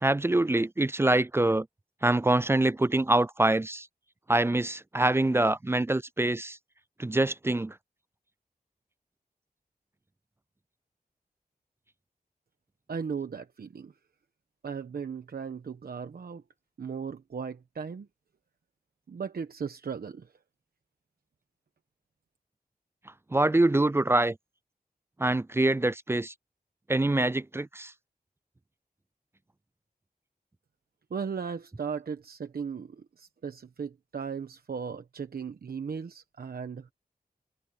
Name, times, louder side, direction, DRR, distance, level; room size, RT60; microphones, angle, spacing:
voice 1, 0.0-1.7 2.0-3.9 4.3-6.6 7.0-7.7 23.3-24.4 25.2-26.3 26.9-27.9, right 2 dB, 15° right, 0.3 m, -25 dB
voice 2, 12.9-13.9 14.6-16.4 16.8-18.1 19.1-20.3 31.1-32.9 33.2-36.9, right 6 dB, 80° right, 1.1 m, -36 dB
wide cardioid pair, 115°, 16 cm